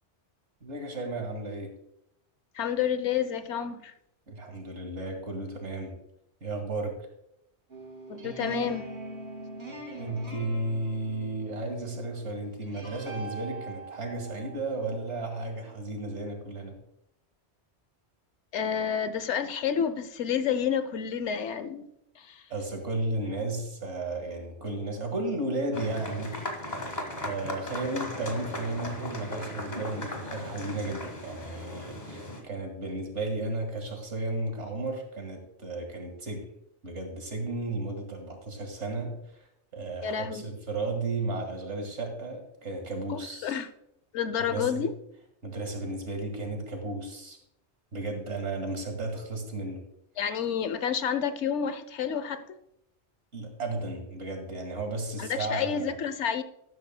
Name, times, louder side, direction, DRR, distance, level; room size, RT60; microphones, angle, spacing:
voice 1, 0.6-1.7 4.3-5.9 6.4-6.9 9.9-16.8 22.5-26.4 27.2-36.4 36.8-39.2 39.7-43.5 44.4-44.9 45.4-47.4 47.9-49.8 53.3-56.0, right 2 dB, 85° right, 2.3 m, -34 dB
voice 2, 2.5-3.9 8.1-8.9 18.5-21.8 22.2-22.4 40.0-40.5 43.1-43.7 44.1-44.9 50.2-52.4 55.2-56.4, left 8 dB, 80° left, 1.0 m, -29 dB
sound 1, 7.7-15.7, right 2 dB, 70° right, 2.6 m, -42 dB
sound 2, 25.7-32.4, left 1 dB, 40° left, 1.8 m, -37 dB
12.5 x 12.5 x 2.2 m
omnidirectional pair, 1.2 m